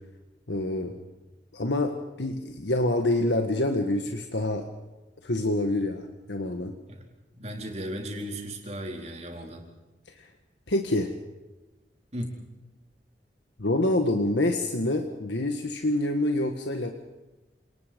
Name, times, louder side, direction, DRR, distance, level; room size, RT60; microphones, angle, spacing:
voice 1, 0.5-0.9 1.5-4.7 5.2-6.7 10.7-11.1 13.6-16.9, left 1 dB, 85° left, 4 dB, 1.7 m, -26 dB
voice 2, 7.3-9.6 12.1-12.4, equal, 40° right, 1 dB, 4.4 m, -36 dB
28.0 x 19.5 x 5.3 m, 1.1 s
head